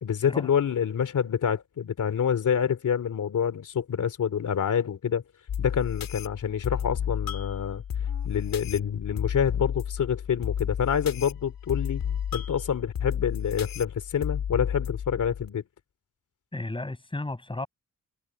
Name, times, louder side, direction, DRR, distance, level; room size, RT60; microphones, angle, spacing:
voice 1, 0.0-5.2 5.6-7.8 8.2-12.0 12.3-15.6, left 8 dB, 60° left, 2.7 m, -27 dB
sound 1, 5.5-15.5, left 8 dB, 80° left, 3.3 m, -32 dB
voice 2, 16.5-17.7, left 2 dB, 15° left, 7.7 m, -33 dB
wide cardioid pair, 130°, 34 cm